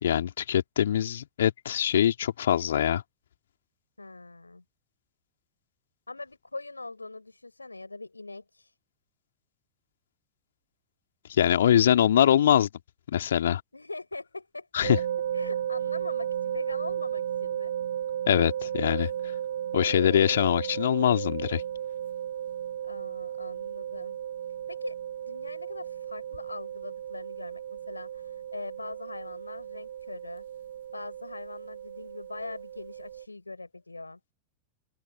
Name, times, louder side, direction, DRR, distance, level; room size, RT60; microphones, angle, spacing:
voice 1, 0.0-3.0 11.3-12.7 13.1-13.6 14.7-15.0 18.3-19.1 19.7-21.6, left 10 dB, 65° left, 3.0 m, -23 dB
voice 2, 4.0-4.6 6.1-8.7 13.7-14.8 15.3-17.7 19.7-20.4 22.8-24.2 24.7-30.5 30.9-34.2, left 2 dB, 80° left, 7.7 m, -42 dB
sound 1, 14.8-33.2, right 10 dB, 65° right, 0.8 m, -34 dB
open air
figure-of-eight pair, 90°, 0 cm